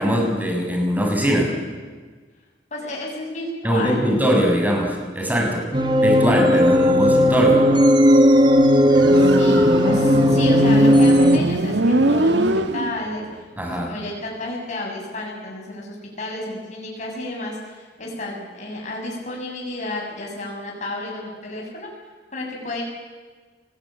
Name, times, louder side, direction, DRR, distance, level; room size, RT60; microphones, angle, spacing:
voice 1, 0.0-1.5 3.6-5.6 6.0-7.6 13.6-13.9, equal, 10° right, 1 dB, 6.8 m, -21 dB
voice 2, 2.7-4.0 5.3-5.6 9.1-12.5 12.7-13.3 13.9-22.8, left 2 dB, 45° left, -2 dB, 7.3 m, -32 dB
sound 1, 5.7-11.4, equal, 25° right, 1.8 m, -15 dB
Motorcycle, 8.9-13.2, right 1 dB, 85° right, 1.9 m, -22 dB
29.0 x 20.5 x 8.9 m, 1.4 s
head